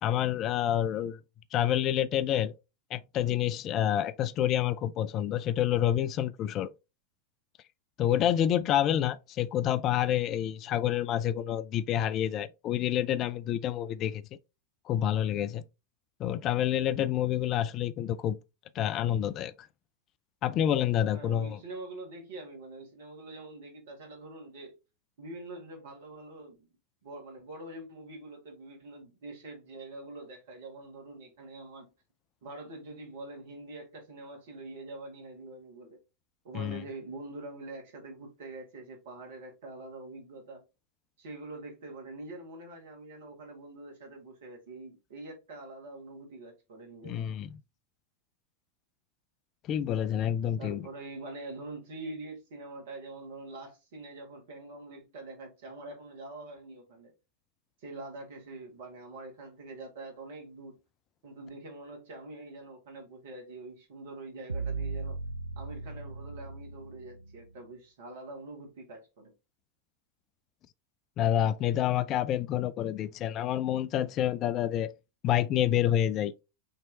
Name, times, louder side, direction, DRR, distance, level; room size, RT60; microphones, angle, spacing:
voice 1, 0.0-1.2 1.5-2.5 2.9-6.7 8.0-14.2 14.9-15.6 16.2-18.4 18.7-19.7 20.4-21.6 36.5-36.8 47.0-47.5 49.7-50.9 71.2-74.9 75.2-76.3, left 11 dB, 35° left, 0.3 m, -28 dB
voice 2, 21.1-24.7 25.2-26.7 27.0-31.9 32.4-36.0 36.4-40.6 41.2-47.3 50.6-57.1 57.8-60.7 61.2-65.2 65.6-69.3, right 2 dB, 55° right, 1.9 m, -45 dB
sound 1, 64.5-67.6, right 3 dB, 85° right, 0.3 m, -37 dB
5.9 x 3.2 x 2.8 m
figure-of-eight pair, 90°, 0 cm